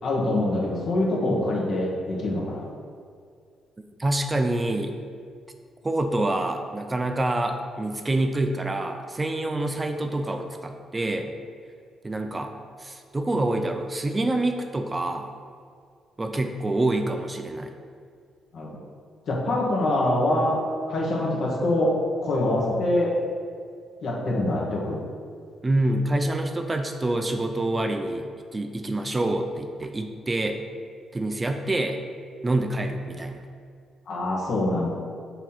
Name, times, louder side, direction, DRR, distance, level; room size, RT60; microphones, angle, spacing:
voice 1, 0.0-2.7 18.5-18.8 19.3-23.2 24.0-25.0 34.1-34.9, left 1 dB, 65° left, -3 dB, 1.4 m, -25 dB
voice 2, 4.0-5.0 5.8-11.4 12.0-12.5 12.8-15.3 16.2-17.7 25.6-30.6 31.1-32.0 32.4-33.4, right 1 dB, 20° right, 6 dB, 0.4 m, -26 dB
5.9 x 3.0 x 5.6 m, 2.2 s
cardioid pair, 90°, 0 cm